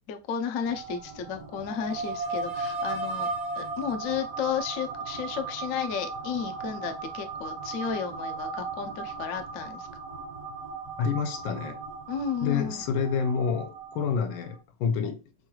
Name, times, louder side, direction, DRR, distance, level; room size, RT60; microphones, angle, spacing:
voice 1, 0.1-3.3 3.6-9.9 12.1-12.8, left 7 dB, 65° left, 0.8 m, -33 dB
sound 1, 0.6-14.6, right 4 dB, 60° right, 1.7 m, -36 dB
voice 2, 11.0-11.8 12.4-15.2, left 6 dB, 85° left, 1.4 m, -28 dB
4.6 x 3.1 x 2.3 m
omnidirectional pair, 2.0 m